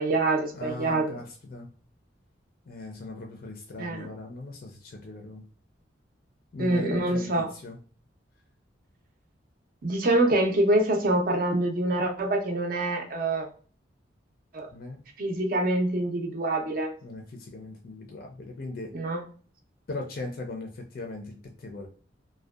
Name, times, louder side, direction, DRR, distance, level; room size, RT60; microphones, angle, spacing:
voice 1, 0.0-1.2 3.8-4.1 6.6-7.5 9.8-13.5 14.5-14.7 15.2-16.9 18.9-19.2, right 2 dB, 45° right, 3 dB, 0.5 m, -25 dB
voice 2, 0.5-1.7 2.7-5.4 6.5-7.8 14.7-15.0 17.0-18.9 19.9-21.9, left 2 dB, 50° left, 2 dB, 0.4 m, -39 dB
2.6 x 2.1 x 2.3 m, 0.41 s
head